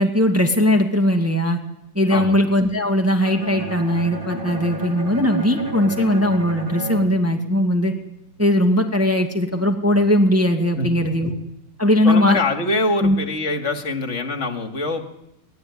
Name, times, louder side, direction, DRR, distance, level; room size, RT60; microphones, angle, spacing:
voice 1, 0.0-1.6 1.9-7.9 8.4-11.3 11.8-12.4 13.0-13.2, left 1 dB, 10° right, 4 dB, 2.1 m, -19 dB
voice 2, 2.1-2.4 10.8-10.9 12.0-15.1, left 2 dB, 40° left, 5 dB, 2.4 m, -24 dB
Bowed string instrument, 3.2-8.2, right 1 dB, 25° right, 2.7 m, -32 dB
24.0 x 18.5 x 9.7 m, 0.89 s
omnidirectional pair, 2.1 m